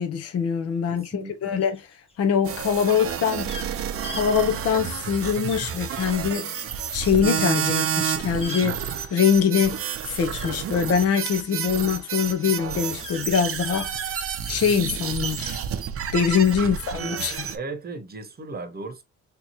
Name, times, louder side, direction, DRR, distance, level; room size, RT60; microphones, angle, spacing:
voice 1, 0.0-1.9 2.2-3.5 4.1-6.7 6.9-8.8 9.1-15.6 16.1-17.5, left 7 dB, 55° left, 0.7 m, -23 dB
voice 2, 0.9-1.6 16.6-16.7 17.5-19.0, right 3 dB, 30° right, 1.0 m, -36 dB
sound 1, 1.6-2.1 3.4-3.7 4.0-4.3 5.5-5.7 6.0-6.1 7.7-8.0 8.4-8.6 10.3-11.3 13.0-13.3 13.7-13.9 15.3-15.5, left 3 dB, 20° left, 0.9 m, -39 dB
sound 2, 2.4-17.6, right 8 dB, 50° right, 0.6 m, -30 dB
3.6 x 2.9 x 2.8 m
cardioid pair, 90°, 30 cm